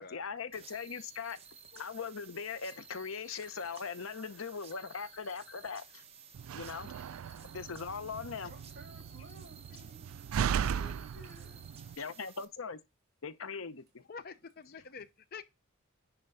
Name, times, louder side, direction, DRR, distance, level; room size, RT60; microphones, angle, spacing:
voice 1, 0.0-1.4 1.7-6.0 6.5-7.0 7.5-8.5 12.0-12.8 13.2-14.0, left 5 dB, 80° left, 0.8 m, -40 dB
sound 1, 0.5-12.4, right 6 dB, 30° right, 1.2 m, -55 dB
Slam, 6.3-12.0, right 8 dB, 85° right, 0.3 m, -37 dB
voice 2, 8.4-10.2 10.5-11.6, right 1 dB, 50° right, 3.2 m, -55 dB
voice 3, 14.1-15.4, left 5 dB, 45° left, 0.7 m, -47 dB
10.0 x 3.7 x 5.5 m
head